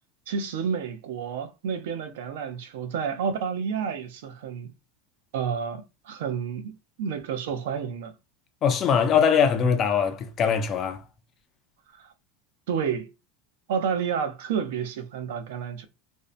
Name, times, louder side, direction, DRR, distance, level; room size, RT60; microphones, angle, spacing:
voice 1, 0.3-4.7 5.3-8.1 11.9-12.1 12.7-13.1 13.7-15.8, right 7 dB, 75° right, 0.5 m, -30 dB
voice 2, 8.6-11.0, left 7 dB, 25° left, 0.3 m, -22 dB
2.6 x 2.1 x 2.4 m
supercardioid pair, 180°, 0 cm